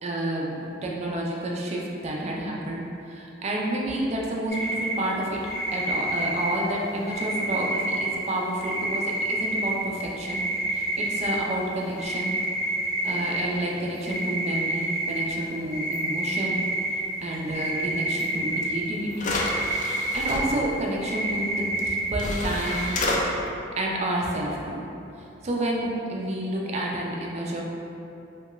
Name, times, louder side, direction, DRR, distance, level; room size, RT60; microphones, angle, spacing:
voice 1, 0.0-5.4 5.7-12.3 13.0-16.6 17.2-19.4 20.1-22.9 23.8-24.8 25.4-27.6, right 1 dB, 35° right, -2 dB, 0.4 m, -29 dB
sound 1, 4.5-4.9 5.5-6.5 7.1-8.1 8.6-9.7 10.2-11.3 12.0-13.4 14.1-15.2 15.7-16.9 17.5-18.7 19.1-20.4 21.0-22.0 22.6-22.8, right 1 dB, ahead, 0.7 m, -28 dB
sound 2, 18.6-18.7 19.1-20.4 21.8-21.9 22.2-23.2, left 2 dB, 40° left, 0.3 m, -29 dB
2.8 x 2.3 x 2.9 m, 2.8 s
head